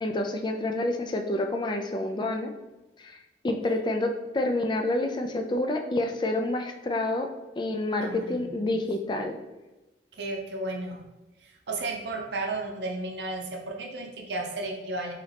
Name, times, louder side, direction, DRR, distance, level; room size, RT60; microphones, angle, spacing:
voice 1, 0.0-2.5 3.0-3.2 3.4-7.3 7.6-9.4, left 2 dB, 25° left, 4 dB, 0.3 m, -28 dB
voice 2, 8.0-8.7 10.1-11.1 11.4-15.1, right 2 dB, 80° right, 1 dB, 0.6 m, -34 dB
3.6 x 3.1 x 3.3 m, 1.1 s
head